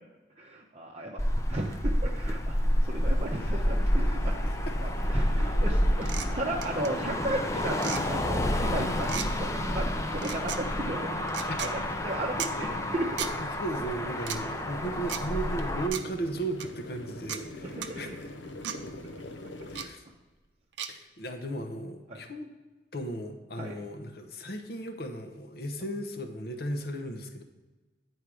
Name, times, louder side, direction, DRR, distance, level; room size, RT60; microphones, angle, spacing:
voice 1, 0.4-1.2 1.5-2.5 2.8-4.5 4.8-13.3 14.8-14.9 17.6-18.2 22.1-22.2 23.6-23.8, right 1 dB, 35° right, -2 dB, 0.7 m, -35 dB
Motor vehicle (road), 1.2-15.9, left 1 dB, 15° left, 0.5 m, -29 dB
sound 1, 2.4-19.9, left 1 dB, 90° left, 0.8 m, -44 dB
sound 2, 6.0-6.3 6.6-6.9 7.7-8.0 9.0-9.3 10.1-10.6 11.3-11.7 12.4-12.5 13.2-13.3 14.2-14.4 15.1-15.2 15.9-16.0 16.6-16.7 17.3-17.4 17.8-17.9 18.6-18.8 19.7-19.9 20.8-20.9, right 9 dB, 80° right, 0.6 m, -35 dB
voice 2, 13.4-18.3 18.6-18.8 19.7-20.0 20.9-22.5 22.9-27.4, right 1 dB, 55° left, 6 dB, 0.8 m, -36 dB
9.6 x 4.6 x 4.9 m, 1.2 s
head